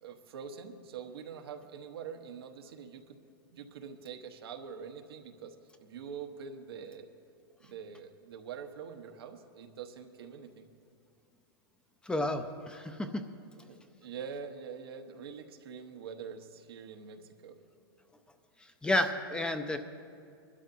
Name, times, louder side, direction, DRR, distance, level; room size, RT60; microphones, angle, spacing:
voice 1, 0.0-3.2 3.5-5.5 5.8-7.1 7.6-10.7 13.5-17.6, right 6 dB, 85° right, 4 dB, 1.1 m, -45 dB
voice 2, 12.1-13.2 18.8-19.8, left 1 dB, 5° left, 7 dB, 0.5 m, -31 dB
21.0 x 12.0 x 2.7 m, 2.4 s
hypercardioid pair, 135°, 13 cm